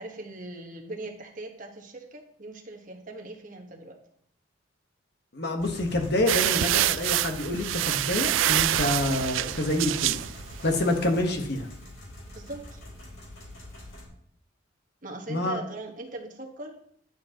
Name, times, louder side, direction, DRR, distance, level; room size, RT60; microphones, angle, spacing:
voice 1, 0.0-4.0 12.3-12.8 15.0-16.8, right 2 dB, 40° right, 2 dB, 1.3 m, -40 dB
voice 2, 5.3-10.2 10.6-11.7 15.3-15.6, left 1 dB, 55° left, 4 dB, 1.3 m, -27 dB
sound 1, 5.6-14.1, left 1 dB, 85° left, 3.7 m, -44 dB
sound 2, 6.3-10.9, right 13 dB, 75° right, 0.3 m, -26 dB
11.0 x 7.5 x 2.9 m, 0.67 s
head